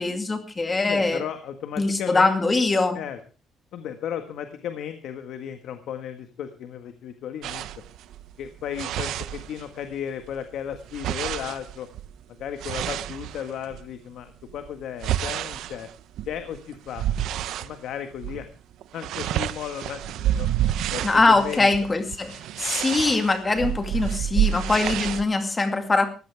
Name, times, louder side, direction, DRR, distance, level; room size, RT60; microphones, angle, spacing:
voice 1, 0.0-1.2 1.8-3.0 21.0-26.1, left 3 dB, 15° left, 7 dB, 2.2 m, -22 dB
voice 2, 0.8-2.3 2.9-3.2 3.7-7.6 8.4-11.9 12.4-15.9 16.3-17.0 17.6-18.5 18.9-20.5 20.9-21.7, left 9 dB, 60° left, 8 dB, 1.6 m, -35 dB
sound 1, 7.4-9.9 10.2-13.9 14.4-17.8 18.2-18.5 18.7-25.3, right 11 dB, 65° right, 0.8 m, -29 dB
19.5 x 15.5 x 3.5 m, 0.34 s
cardioid pair, 175°, 0 cm